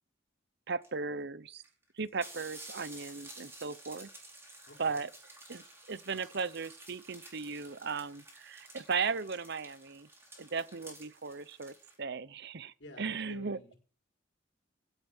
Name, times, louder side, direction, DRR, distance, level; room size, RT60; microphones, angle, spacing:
voice 1, 0.7-1.6 2.0-4.1 4.8-5.1 5.5-10.1 10.4-13.6, right 5 dB, 55° right, 0.8 m, -37 dB
sound 1, 0.8-0.9 1.6-1.7 2.0-12.0, right 2 dB, 15° right, 5.0 m, -52 dB
voice 2, 4.7-5.0 12.8-13.8, left 1 dB, 65° left, 5.1 m, -51 dB
16.5 x 8.0 x 7.2 m
head